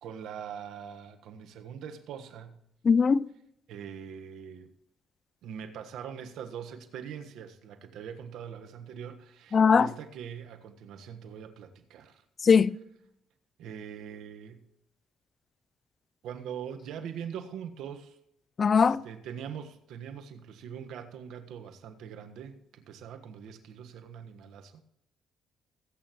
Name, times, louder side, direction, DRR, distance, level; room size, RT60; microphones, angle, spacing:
voice 1, 0.0-2.6 3.7-4.7 5.4-12.2 13.6-14.6 16.2-18.2 18.8-24.8, right 8 dB, 75° right, 1.4 m, -42 dB
voice 2, 2.8-3.3 9.5-9.9 12.4-12.8 18.6-19.0, left 5 dB, 45° left, 0.4 m, -20 dB
22.0 x 8.8 x 3.1 m
supercardioid pair, 70°, 0 cm